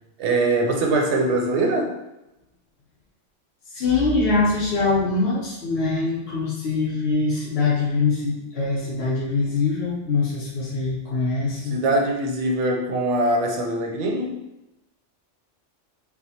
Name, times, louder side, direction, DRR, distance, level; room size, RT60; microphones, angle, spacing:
voice 1, 0.2-2.0 11.7-14.4, right 2 dB, 70° right, 1 dB, 0.9 m, -22 dB
voice 2, 3.7-11.8, left 3 dB, 55° left, -7 dB, 0.9 m, -23 dB
4.6 x 2.1 x 2.7 m, 0.96 s
omnidirectional pair, 1.2 m